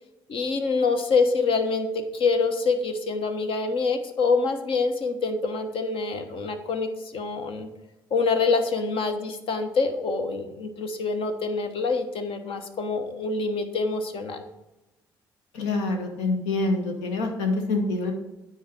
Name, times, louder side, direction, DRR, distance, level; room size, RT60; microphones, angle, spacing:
voice 1, 0.3-7.7 8.1-14.4, left 4 dB, 60° left, 6 dB, 1.2 m, -26 dB
voice 2, 15.5-18.1, left 2 dB, 75° left, 3 dB, 1.4 m, -26 dB
9.3 x 4.6 x 6.6 m, 0.98 s
hypercardioid pair, 50°, 11 cm